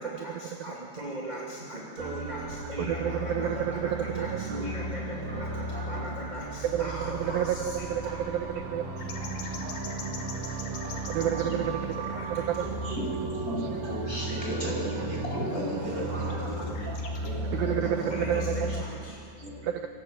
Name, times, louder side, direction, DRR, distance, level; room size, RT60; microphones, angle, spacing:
voice 1, 0.0-8.4 11.2-11.3 11.9-12.8 15.9-16.9 18.1-19.2, right 1 dB, 15° right, -4 dB, 2.0 m, -39 dB
sound 1, 2.0-18.8, right 2 dB, 60° right, 3.4 m, -35 dB
voice 2, 2.8-4.4 6.7-9.0 11.1-11.9 12.3-12.7 17.5-18.7 19.6-19.9, right 10 dB, 80° right, 6 dB, 2.2 m, -30 dB
sound 2, 9.0-12.0 12.3-13.1 13.4-17.5 17.9-18.0, left 5 dB, 70° left, 4.5 m, -45 dB
voice 3, 9.9-11.8 12.8-16.9 17.2-18.8 19.4-19.6, equal, 20° left, -3 dB, 7.8 m, -35 dB
27.0 x 21.5 x 8.3 m, 2.4 s
omnidirectional pair, 4.9 m